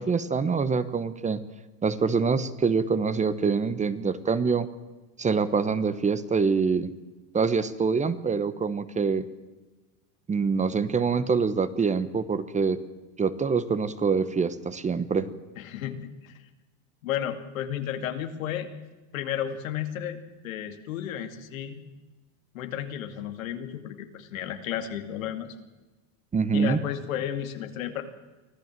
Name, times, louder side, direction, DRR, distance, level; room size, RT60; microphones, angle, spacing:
voice 1, 0.0-1.4 1.8-4.7 5.2-6.9 7.3-9.2 10.3-12.8 13.2-15.3 26.3-26.8, right 5 dB, 20° right, 14 dB, 1.1 m, -25 dB
voice 2, 15.6-16.5 17.0-18.7 19.1-21.8 22.5-25.6 26.5-28.0, left 10 dB, 90° left, 7 dB, 2.4 m, -33 dB
24.5 x 15.0 x 7.6 m, 1.2 s
supercardioid pair, 120°, 39 cm